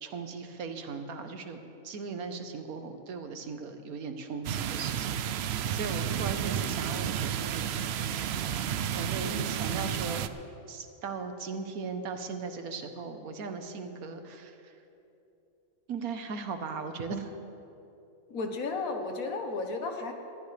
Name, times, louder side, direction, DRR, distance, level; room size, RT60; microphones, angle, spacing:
voice 1, 0.0-1.6 1.8-5.1 5.4-7.7 8.5-10.3 10.7-14.5 15.9-17.2, right 5 dB, 90° right, 7 dB, 1.5 m, -38 dB
sound 1, 4.4-10.3, right 9 dB, 65° right, 0.6 m, -31 dB
voice 2, 9.2-9.6 18.3-20.1, left 3 dB, 75° left, 4 dB, 1.6 m, -34 dB
21.0 x 14.0 x 3.3 m, 2.8 s
omnidirectional pair, 1.5 m